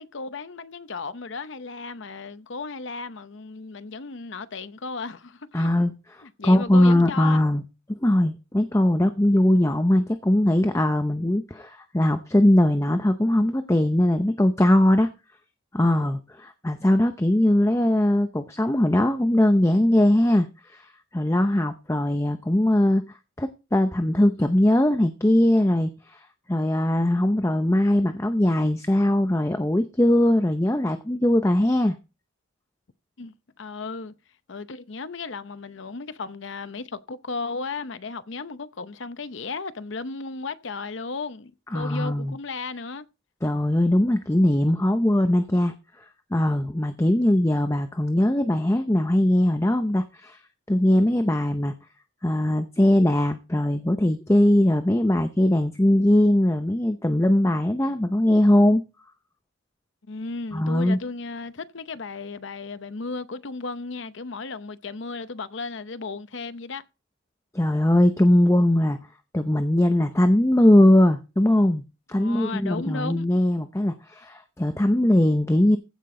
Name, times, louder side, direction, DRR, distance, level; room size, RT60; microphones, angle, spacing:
voice 1, 0.0-5.7 6.2-7.4 33.2-34.1 34.5-43.1 60.1-66.8 72.2-73.3, left 4 dB, 60° left, 0.7 m, -35 dB
voice 2, 5.5-5.9 6.4-7.6 8.0-15.1 15.7-23.0 23.4-26.2 26.5-32.0 41.7-42.3 43.4-45.7 46.3-50.4 50.7-51.7 52.2-58.8 60.5-61.0 67.5-69.0 69.3-71.8 72.1-75.8, left 1 dB, 15° left, 0.6 m, -20 dB
15.0 x 6.0 x 3.8 m
head